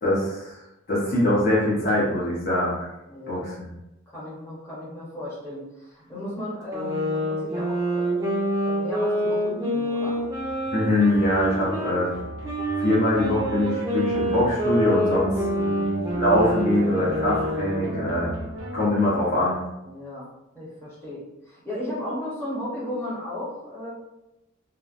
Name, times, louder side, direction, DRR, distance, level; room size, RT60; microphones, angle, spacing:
voice 1, 0.0-0.5 0.9-2.7 3.3-3.7 10.7-12.1 12.8-15.3 16.1-18.3 18.7-19.6, left 1 dB, 45° left, -6 dB, 0.8 m, -23 dB
voice 2, 3.1-3.5 4.1-8.3 8.6-10.2 15.5-15.9 19.9-20.3 20.5-23.9, left 1 dB, 15° left, -9 dB, 0.9 m, -35 dB
sound 1, 6.7-12.0 12.4-18.0, right 1 dB, 15° right, 0.5 m, -27 dB
sound 2, 10.1-19.1, equal, 70° right, 0.5 m, -35 dB
3.1 x 2.0 x 2.4 m, 0.94 s
head